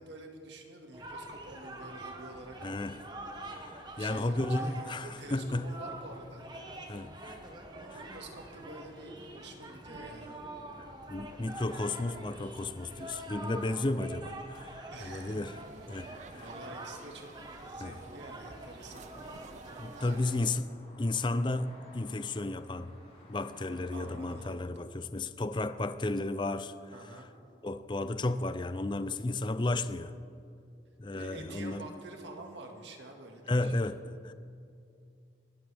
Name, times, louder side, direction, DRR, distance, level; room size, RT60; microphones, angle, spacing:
voice 1, 0.0-2.6 3.9-6.4 7.7-10.4 14.9-15.5 16.3-17.3 17.6-19.1 20.0-20.4 23.9-24.8 26.9-27.3 31.1-33.7, right 2 dB, 85° right, 2.0 m, -47 dB
sound 1, 0.9-20.4, right 1 dB, 25° right, 1.3 m, -45 dB
voice 2, 2.6-3.0 3.4-5.7 6.9-7.4 7.9-8.0 10.8-15.6 15.9-16.4 17.8-18.0 19.8-20.7 21.0-22.9 23.3-26.7 27.6-30.1 31.0-31.8 33.5-34.3, left 2 dB, 25° left, 0.4 m, -33 dB
sound 2, 15.0-20.6, right 4 dB, 40° right, 0.4 m, -53 dB
sound 3, 16.3-24.4, left 1 dB, 45° left, 4.7 m, -56 dB
24.5 x 13.5 x 3.5 m
head